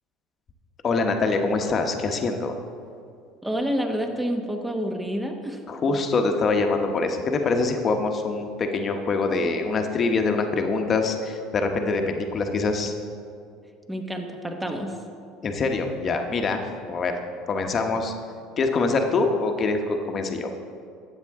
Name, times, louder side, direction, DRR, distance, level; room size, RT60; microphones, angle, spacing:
voice 1, 0.8-2.5 5.7-12.9 15.4-16.6 16.9-17.1 17.5-18.1 18.6-20.5, left 3 dB, 35° left, 4 dB, 1.0 m, -24 dB
voice 2, 3.4-5.6 5.9-6.0 13.9-14.9, equal, 5° right, 4 dB, 1.1 m, -28 dB
12.5 x 8.3 x 3.6 m, 2.3 s
supercardioid pair, 95°, 0 cm